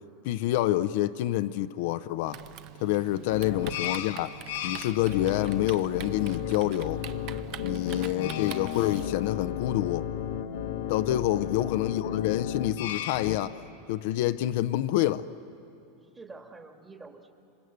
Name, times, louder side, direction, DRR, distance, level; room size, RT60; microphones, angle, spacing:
voice 1, 0.2-2.4 2.8-4.4 4.6-7.0 7.6-10.1 10.9-13.6 13.9-15.3, left 14 dB, 60° left, 0.6 m, -27 dB
Typing, 2.3-9.1, right 13 dB, 45° right, 0.7 m, -45 dB
sound 1, 3.3-13.4, left 9 dB, 85° left, 1.5 m, -34 dB
voice 2, 3.3-3.7 11.3-11.8 16.0-17.3, right 3 dB, 15° right, 1.6 m, -49 dB
26.5 x 26.0 x 8.0 m
supercardioid pair, 155°, 0 cm